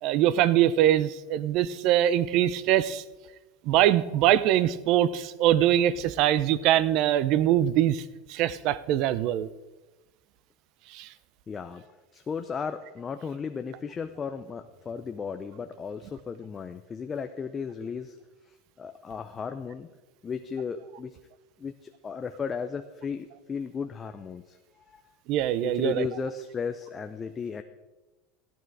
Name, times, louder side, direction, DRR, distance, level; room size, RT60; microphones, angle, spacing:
voice 1, 0.0-3.0 3.6-8.0 8.3-9.5 10.9-11.1 25.3-26.1, right 12 dB, 55° right, 17 dB, 0.5 m, -23 dB
voice 2, 11.5-18.2 18.8-19.9 20.2-21.2 21.6-24.6 24.9-25.0 25.6-27.6, left 6 dB, 20° left, 7 dB, 0.5 m, -35 dB
14.5 x 9.1 x 4.8 m, 1.1 s
supercardioid pair, 140°, 0 cm